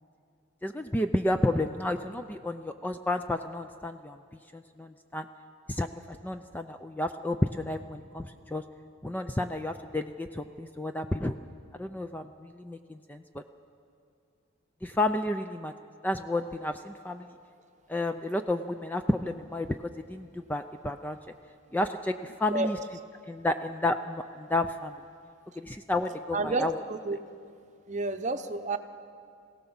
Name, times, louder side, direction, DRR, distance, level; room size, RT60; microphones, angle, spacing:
voice 1, 0.6-4.2 4.5-5.3 5.7-8.6 9.0-11.4 11.8-13.4 14.8-15.7 16.0-17.3 17.9-21.2 21.7-22.8 23.3-24.9 25.6-26.7, left 1 dB, 10° left, 7 dB, 0.4 m, -31 dB
voice 2, 26.3-27.2 27.9-28.8, right 2 dB, 35° right, 8 dB, 0.8 m, -30 dB
24.5 x 17.0 x 7.1 m, 2.4 s
head